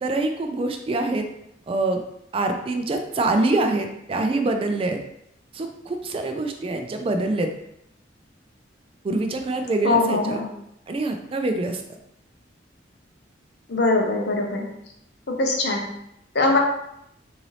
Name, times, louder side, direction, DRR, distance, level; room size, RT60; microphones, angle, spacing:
voice 1, 0.0-1.2 1.7-2.0 2.3-5.0 5.5-7.5 9.0-10.4 10.9-11.8, right 2 dB, 30° right, 5 dB, 0.3 m, -25 dB
voice 2, 9.8-10.5 13.7-14.7 15.3-15.8 16.3-16.6, left 2 dB, 60° left, 1 dB, 0.7 m, -21 dB
3.9 x 2.7 x 3.1 m, 0.78 s
head